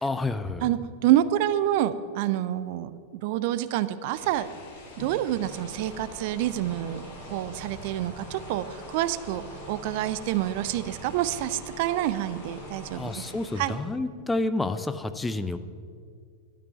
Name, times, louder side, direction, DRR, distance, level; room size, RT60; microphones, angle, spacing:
voice 1, 0.0-0.7 12.9-15.6, left 2 dB, 10° left, 11 dB, 0.6 m, -29 dB
voice 2, 0.6-4.5 5.0-7.0 7.3-13.3 13.6-13.8, right 13 dB, 50° right, 13 dB, 0.5 m, -27 dB
sound 1, 4.1-13.8, left 2 dB, 55° left, 2.6 m, -46 dB
sound 2, 5.4-13.1, right 1 dB, 5° right, 2.6 m, -45 dB
12.5 x 6.1 x 9.1 m, 2.1 s
figure-of-eight pair, 90°, 0 cm